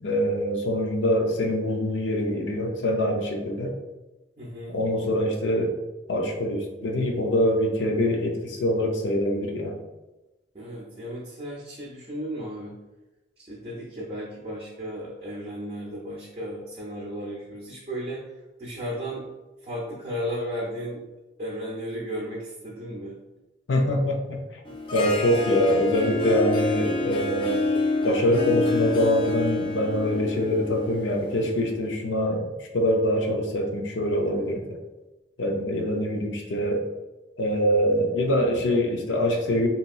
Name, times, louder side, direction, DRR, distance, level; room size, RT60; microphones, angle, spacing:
voice 1, 0.0-3.7 4.7-5.8 6.1-9.8 23.7-24.4 24.9-27.7 28.0-34.8 35.4-36.8 37.4-39.7, equal, 90° left, 1 dB, 0.5 m, -24 dB
voice 2, 4.4-4.8 10.5-12.8 13.4-18.3 18.6-19.3 19.6-21.0 21.4-23.2, equal, 35° right, -5 dB, 0.5 m, -34 dB
Harp, 24.7-31.8, left 3 dB, 30° left, 0.3 m, -28 dB
2.8 x 2.7 x 2.3 m, 1.1 s
head